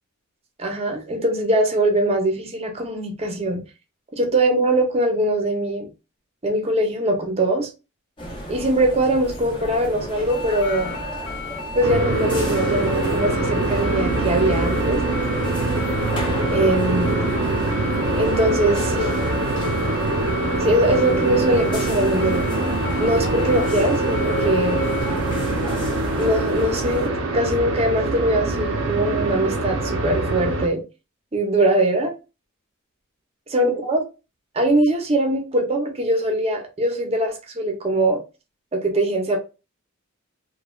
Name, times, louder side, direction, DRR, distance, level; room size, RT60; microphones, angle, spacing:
voice 1, 0.6-3.6 4.1-5.9 6.4-7.7 8.5-11.0 11.8-15.0 16.5-17.2 18.1-19.1 20.6-22.5 23.0-24.8 26.1-30.8 31.3-32.1 33.5-34.0 34.5-38.2 38.7-39.4, right 1 dB, 30° right, 0.7 m, -22 dB
sound 1, 8.2-27.1, equal, 25° left, 0.7 m, -34 dB
sound 2, 10.3-25.1, left 3 dB, 75° left, 0.7 m, -35 dB
sound 3, 11.8-30.7, right 2 dB, 70° right, 0.6 m, -23 dB
3.1 x 2.3 x 2.3 m
head